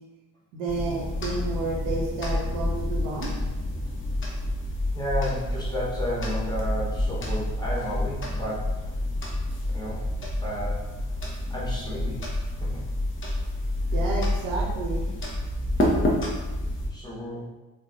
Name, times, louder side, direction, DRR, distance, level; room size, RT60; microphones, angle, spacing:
voice 1, 0.5-3.3 13.9-15.0, right 3 dB, 70° right, -2 dB, 0.7 m, -31 dB
sound 1, 0.7-16.9, left 1 dB, 25° left, 0.7 m, -28 dB
voice 2, 4.9-8.9 9.7-10.0 10.4-10.9 11.5-12.2 12.6-12.8 16.9-17.5, equal, 10° left, -6 dB, 1.2 m, -32 dB
3.7 x 2.4 x 2.6 m, 1.1 s
figure-of-eight pair, 45°, 46 cm